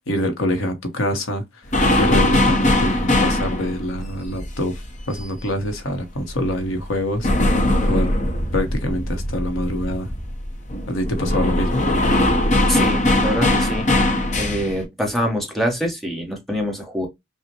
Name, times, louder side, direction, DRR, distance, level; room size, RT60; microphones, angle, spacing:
voice 1, 0.1-1.7 2.0-4.8 5.1-8.1 8.5-10.1 10.9-11.8, left 1 dB, 75° left, 1.0 m, -25 dB
sound 1, 1.7-6.0 6.3-14.8, left 1 dB, 35° left, 0.8 m, -20 dB
voice 2, 12.7-13.9 14.4-17.1, equal, ahead, 1.0 m, -25 dB
5.5 x 2.1 x 2.9 m
head